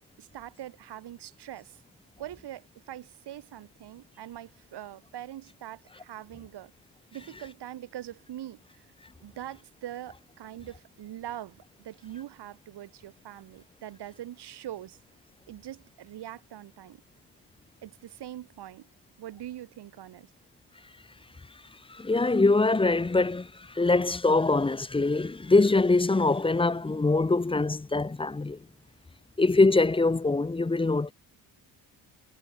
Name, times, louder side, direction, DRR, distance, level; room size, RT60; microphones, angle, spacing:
voice 1, 0.2-1.8 2.2-6.7 7.1-8.9 9.2-15.0 15.5-17.0 17.8-18.9 19.2-20.3, right 12 dB, 85° right, 4.6 m, -43 dB
voice 2, 21.9-28.6 29.4-31.1, left 3 dB, 15° left, 0.7 m, -23 dB
cardioid pair, 80°, 39 cm